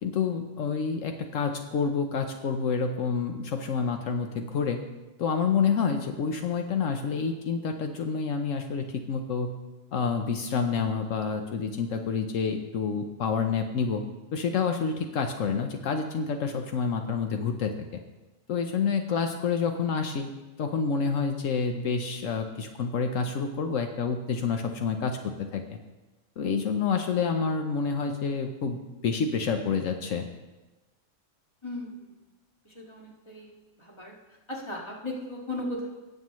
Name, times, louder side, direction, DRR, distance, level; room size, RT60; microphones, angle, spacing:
voice 1, 0.0-4.8 5.2-9.5 9.9-14.0 14.3-18.0 18.5-20.3 20.6-25.8 26.4-30.2, left 5 dB, 80° left, 5 dB, 1.1 m, -28 dB
voice 2, 31.6-32.1 32.6-33.5 33.8-34.1 34.5-35.9, left 1 dB, 20° left, -3 dB, 2.0 m, -36 dB
18.5 x 7.8 x 3.1 m, 1.1 s
omnidirectional pair, 1.3 m